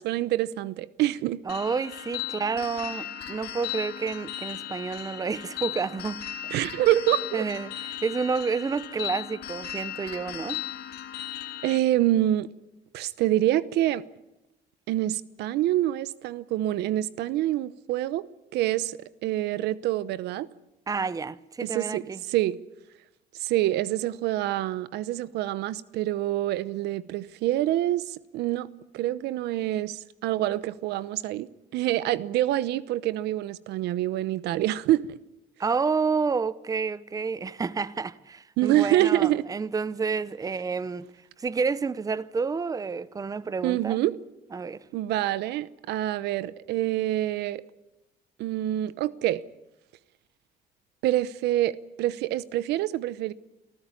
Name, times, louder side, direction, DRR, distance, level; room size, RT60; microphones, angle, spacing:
voice 1, 0.0-1.4 6.5-7.4 11.6-12.5 12.9-14.0 14.9-18.3 18.5-20.5 21.6-22.6 23.4-28.7 28.9-35.2 38.6-39.4 43.6-44.2 44.9-47.6 48.4-49.4 51.0-53.3, right 14 dB, 80° right, 0.8 m, -26 dB
sound 1, 1.5-11.8, left 12 dB, 70° left, 2.0 m, -37 dB
voice 2, 1.5-6.2 7.3-10.6 20.9-22.2 35.6-41.1 41.4-44.0 44.5-44.8, right 5 dB, 20° right, 0.8 m, -29 dB
25.5 x 14.5 x 9.8 m
cardioid pair, 110°, 17 cm